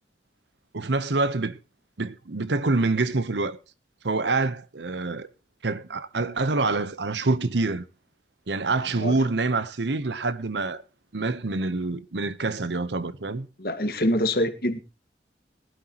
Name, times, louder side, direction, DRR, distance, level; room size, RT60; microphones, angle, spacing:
voice 1, 0.7-1.6 2.0-3.6 4.0-5.3 5.6-7.8 8.5-10.8 11.1-13.5, right 3 dB, 85° right, 0.9 m, -26 dB
voice 2, 13.6-14.8, left 1 dB, 55° left, 1.6 m, -25 dB
19.5 x 12.0 x 3.0 m
head